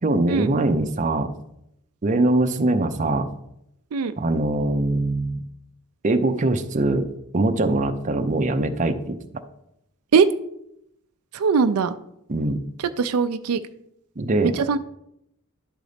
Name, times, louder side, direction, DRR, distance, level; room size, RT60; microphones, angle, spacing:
voice 1, 0.0-1.3 2.0-3.3 4.2-5.4 6.0-7.1 7.3-9.2 12.3-12.6 14.2-14.6, right 2 dB, 35° right, 6 dB, 0.6 m, -22 dB
voice 2, 11.3-11.9 13.0-13.6 14.4-14.8, right 5 dB, 85° right, 11 dB, 0.4 m, -20 dB
11.0 x 4.0 x 5.0 m, 0.78 s
head